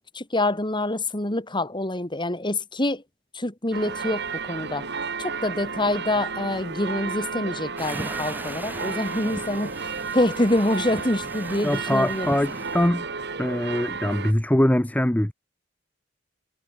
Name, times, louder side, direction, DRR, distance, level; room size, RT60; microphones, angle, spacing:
voice 1, 0.1-3.0 3.3-4.9 5.2-12.4, left 1 dB, 25° left, 4.0 m, -26 dB
sound 1, 3.7-14.3, right 5 dB, 60° right, 3.6 m, -32 dB
sound 2, 7.8-12.9, right 1 dB, 10° right, 2.3 m, -39 dB
voice 2, 11.6-13.0 13.4-15.3, left 1 dB, 10° left, 0.8 m, -22 dB
head